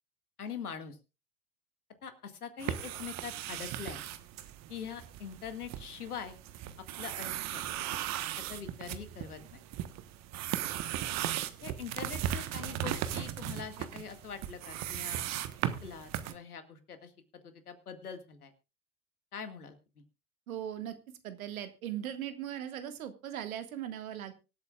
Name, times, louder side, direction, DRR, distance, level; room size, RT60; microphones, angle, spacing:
voice 1, 0.4-1.0 2.0-4.0 4.7-6.4 6.8-7.6 8.4-9.6 11.6-15.3 15.8-17.1 17.4-18.5 19.3-20.0, left 7 dB, 80° left, 9 dB, 2.0 m, -43 dB
sound 1, 2.6-16.3, right 12 dB, 35° right, 1.2 m, -37 dB
voice 2, 20.5-21.0 21.2-24.3, right 10 dB, 65° right, 9 dB, 1.9 m, -39 dB
25.0 x 8.3 x 2.4 m, 0.29 s
figure-of-eight pair, 85°, 44 cm